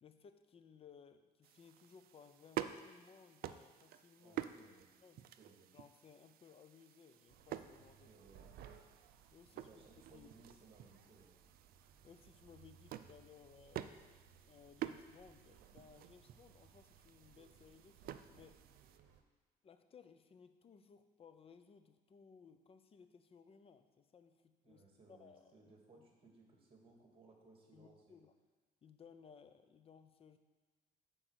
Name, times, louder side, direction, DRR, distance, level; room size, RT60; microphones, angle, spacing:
voice 1, 0.0-4.4 5.0-5.3 5.7-8.1 9.3-10.3 12.0-14.1 14.4-18.6 19.6-24.8 25.1-26.1 27.7-28.3 28.8-30.4, left 6 dB, 35° left, 10 dB, 0.6 m, -61 dB
sound 1, 1.4-19.0, right 12 dB, 60° right, 0.4 m, -50 dB
voice 2, 4.2-4.9 5.4-5.7 8.1-8.4 9.6-11.4 24.6-28.2, right 3 dB, 30° right, 0 dB, 2.0 m, -63 dB
sound 2, 7.3-19.2, right 7 dB, 80° right, 0.8 m, -64 dB
7.7 x 4.6 x 6.4 m, 1.4 s
cardioid pair, 110°, 17 cm